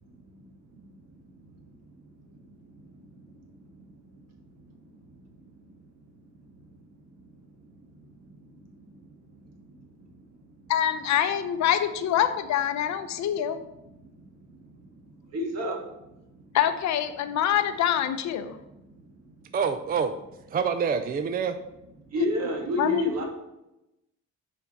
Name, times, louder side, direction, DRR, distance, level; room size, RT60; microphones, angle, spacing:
voice 1, 0.1-0.5 0.7-4.8 5.1-5.8 6.4-6.7 7.2-10.4 14.0-16.2 18.9-19.1 22.1-23.2, equal, 60° right, 1 dB, 1.5 m, -36 dB
voice 2, 10.7-13.6 16.5-18.6 22.8-23.2, left 10 dB, 65° left, 9 dB, 0.6 m, -25 dB
voice 3, 19.5-20.1 20.5-21.6, right 6 dB, 30° right, 9 dB, 0.4 m, -26 dB
5.7 x 4.5 x 4.1 m, 0.91 s
cardioid pair, 90°, 30 cm